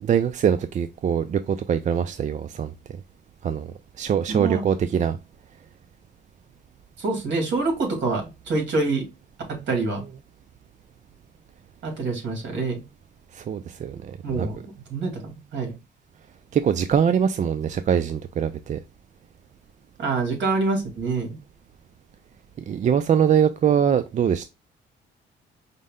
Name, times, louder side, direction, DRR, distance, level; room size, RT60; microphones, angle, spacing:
voice 1, 0.0-2.7 3.4-3.7 4.0-5.2 13.3-14.5 16.5-18.8 22.7-24.5, right 8 dB, 40° right, 0.4 m, -23 dB
voice 2, 4.3-4.6 7.0-9.0 9.5-10.0 11.8-12.8 14.2-14.6 14.9-15.7 20.0-21.3, right 3 dB, 65° right, 2.0 m, -26 dB
5.2 x 2.1 x 3.5 m
cardioid pair, 90°, 20 cm